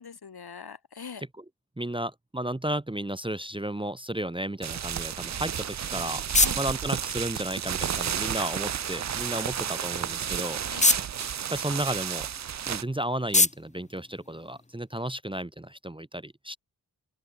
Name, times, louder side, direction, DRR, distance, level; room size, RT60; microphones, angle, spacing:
voice 1, 0.0-1.2 6.4-6.6 10.7-11.0, left 6 dB, 65° left, 1.6 m, -42 dB
voice 2, 1.8-6.2 6.6-10.6 11.5-12.3 12.7-16.6, right 1 dB, 10° right, 0.8 m, -33 dB
sound 1, 4.6-12.8, right 9 dB, 45° right, 0.4 m, -32 dB
sound 2, 5.5-15.0, left 2 dB, 15° left, 1.0 m, -31 dB
open air
wide cardioid pair, 85°, 41 cm